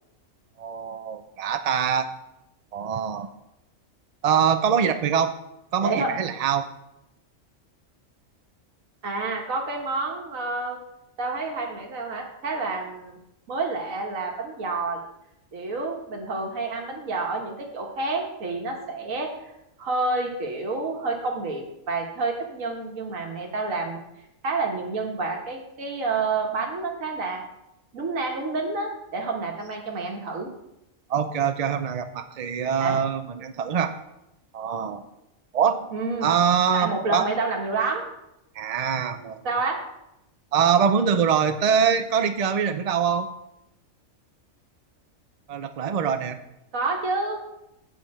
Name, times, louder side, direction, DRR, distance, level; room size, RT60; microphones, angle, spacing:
voice 1, 0.6-2.1 2.7-3.3 4.2-5.4 5.7-6.7 31.1-33.9 34.5-35.0 35.5-35.9 36.2-37.2 38.6-39.4 40.5-43.3 45.5-46.4, right 7 dB, 60° right, 9 dB, 0.4 m, -23 dB
voice 2, 5.8-6.2 9.0-10.8 11.2-13.2 13.5-15.0 15.5-19.5 19.8-24.0 24.4-27.4 27.9-30.5 32.8-33.0 35.9-36.3 36.7-38.0 39.4-39.8 46.7-47.4, right 3 dB, 85° right, 0 dB, 1.7 m, -29 dB
8.6 x 5.1 x 7.4 m, 0.86 s
omnidirectional pair, 1.4 m